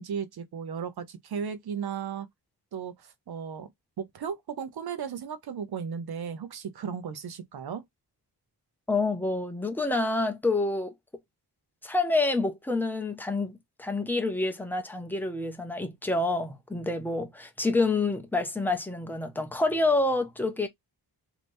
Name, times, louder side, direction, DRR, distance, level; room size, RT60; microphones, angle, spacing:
voice 1, 0.0-2.3 2.7-3.7 4.0-7.8, right 7 dB, 70° right, 0.8 m, -35 dB
voice 2, 8.9-10.9 11.8-20.7, left 2 dB, 5° left, 0.6 m, -28 dB
3.3 x 2.9 x 2.6 m
wide cardioid pair, 140°, 39 cm